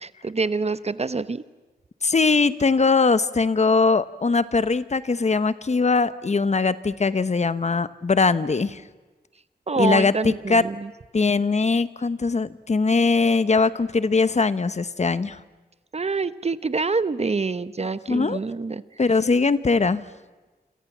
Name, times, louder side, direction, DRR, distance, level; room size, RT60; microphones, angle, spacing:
voice 1, 0.0-1.4 9.7-10.9 15.9-18.8, right 4 dB, 40° right, 14 dB, 0.9 m, -26 dB
voice 2, 2.0-8.8 9.8-10.6 11.1-15.4 18.1-18.4 19.0-20.0, left 4 dB, 45° left, 14 dB, 1.0 m, -21 dB
28.5 x 26.5 x 7.3 m, 1.2 s
wide cardioid pair, 90°, 16 cm